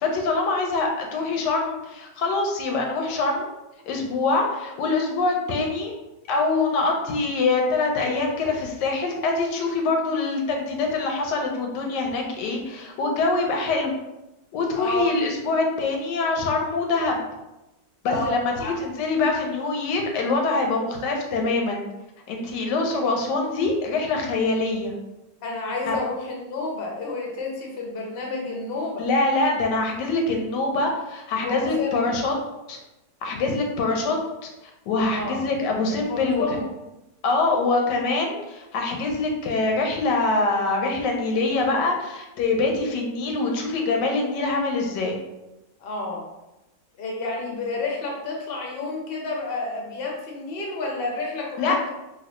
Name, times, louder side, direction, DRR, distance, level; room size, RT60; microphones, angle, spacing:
voice 1, 0.0-3.5 3.9-5.9 6.3-13.9 14.5-17.2 18.0-18.5 18.8-21.8 22.3-25.0 25.9-26.0 29.0-32.3 32.7-32.8 33.2-34.5 34.9-36.4 37.2-45.2 51.6-51.8, left 3 dB, 85° left, 2 dB, 1.3 m, -24 dB
voice 2, 14.8-15.1 18.1-18.7 25.4-29.0 31.4-32.1 35.1-35.4 36.1-36.7 45.8-46.2 47.0-51.9, left 3 dB, 55° left, -1 dB, 0.6 m, -30 dB
3.1 x 2.6 x 3.0 m, 0.97 s
omnidirectional pair, 1.8 m